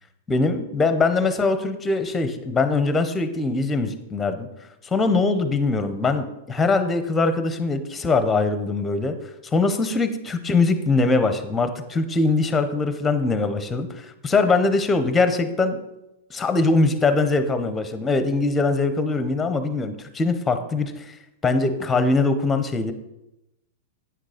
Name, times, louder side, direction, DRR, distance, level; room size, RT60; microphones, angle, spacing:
voice 1, 0.3-4.5 4.8-9.2 9.5-15.8 16.3-21.1 21.4-22.9, left 3 dB, 10° left, 10 dB, 0.7 m, -22 dB
9.1 x 6.4 x 5.0 m, 0.92 s
supercardioid pair, 150°, 0 cm